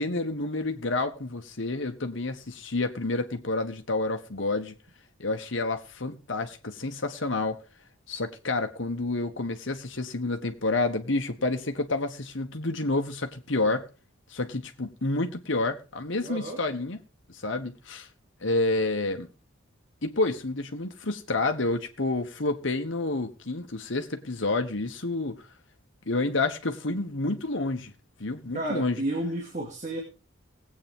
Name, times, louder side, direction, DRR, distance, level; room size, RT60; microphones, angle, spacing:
voice 1, 0.0-4.7 5.2-7.6 8.1-13.9 14.3-17.0 17.3-18.1 18.4-19.3 20.0-25.4 26.1-27.9 28.2-29.0, left 2 dB, 65° left, 1.3 m, -29 dB
voice 2, 16.2-16.6 28.5-30.0, right 1 dB, 35° right, 2.4 m, -31 dB
19.5 x 8.7 x 3.6 m
head